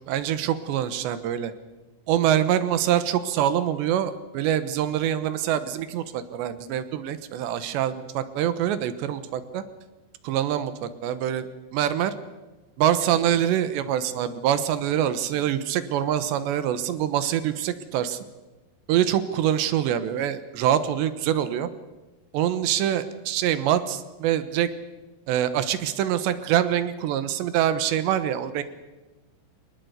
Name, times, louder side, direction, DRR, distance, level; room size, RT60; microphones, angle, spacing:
voice 1, 0.1-1.5 2.1-9.6 10.2-11.5 11.7-12.1 12.8-18.2 18.9-21.7 22.3-24.7 25.3-28.6, right 10 dB, 75° right, 12 dB, 3.3 m, -25 dB
23.5 x 20.0 x 8.1 m, 1.1 s
omnidirectional pair, 5.2 m